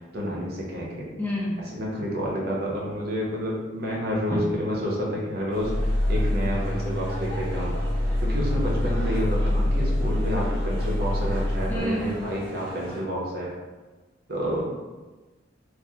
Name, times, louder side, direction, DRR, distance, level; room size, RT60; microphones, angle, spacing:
voice 1, 0.1-1.1 1.7-5.7 6.1-7.8 8.2-13.5 14.3-14.6, equal, 55° right, -4 dB, 0.7 m, -29 dB
voice 2, 1.2-1.6 4.3-4.4 11.7-12.3, equal, 10° left, -5 dB, 0.4 m, -28 dB
sound 1, 5.5-13.0, equal, 75° right, 1.1 m, -41 dB
sound 2, 5.6-11.8, left 1 dB, 70° left, 0.6 m, -25 dB
3.3 x 2.1 x 2.7 m, 1.2 s
head